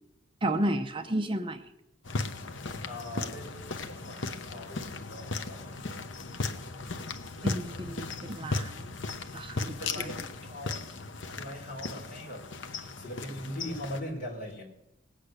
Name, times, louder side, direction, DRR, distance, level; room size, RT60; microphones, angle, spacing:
voice 1, 0.4-1.7 7.4-9.0 9.3-9.8, right 1 dB, 25° right, 7 dB, 0.7 m, -32 dB
sound 1, 2.0-14.0, left 3 dB, 70° left, 1.0 m, -37 dB
voice 2, 2.8-6.0 9.8-14.6, left 1 dB, 45° left, -1 dB, 4.4 m, -41 dB
19.0 x 8.4 x 6.6 m, 0.91 s
head